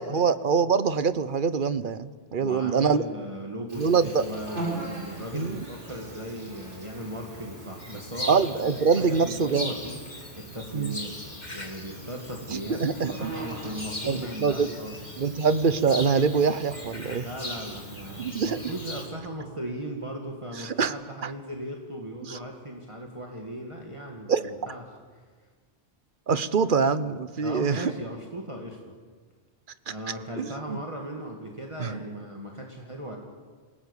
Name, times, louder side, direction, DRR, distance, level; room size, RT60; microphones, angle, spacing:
voice 1, 0.0-3.0 3.8-4.2 5.3-5.6 8.3-9.7 10.7-10.9 12.5-13.3 14.1-14.7 15.2-17.2 18.2-18.6 20.6-20.9 21.2-21.3 22.3-22.4 24.3-24.4 26.3-27.9 30.4-30.8 31.8-32.0, right 5 dB, 50° right, 14 dB, 1.1 m, -24 dB
voice 2, 2.4-10.0 10.3-12.8 13.1-15.0 17.1-24.8 25.1-25.2 27.4-28.8 29.9-33.2, right 1 dB, 25° right, 0 dB, 2.3 m, -37 dB
Insect, 3.7-19.1, right 2 dB, 85° right, 6.8 m, -42 dB
sound 1, 7.8-19.0, left 2 dB, 40° left, 2.7 m, -40 dB
28.0 x 18.0 x 8.3 m, 1.5 s
omnidirectional pair, 1.2 m